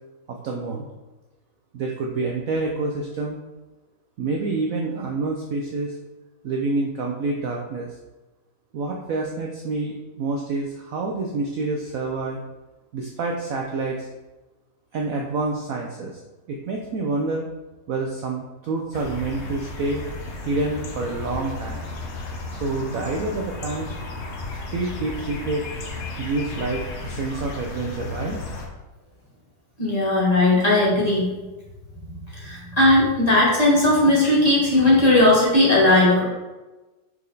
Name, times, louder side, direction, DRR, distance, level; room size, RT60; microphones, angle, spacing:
voice 1, 0.3-0.9 1.7-3.4 4.2-5.9 6.4-7.9 8.7-12.4 12.9-14.1 14.9-16.2 16.5-17.5 17.9-20.0 20.5-21.8 22.5-23.9 24.7-25.6 26.2-28.4, right 3 dB, 60° right, 0 dB, 0.9 m, -27 dB
sound 1, 18.9-28.7, left 3 dB, 50° left, 1.0 m, -34 dB
voice 2, 29.8-31.3 32.4-36.2, left 2 dB, 20° left, -7 dB, 2.1 m, -17 dB
6.1 x 4.4 x 3.9 m, 1.1 s
omnidirectional pair, 2.0 m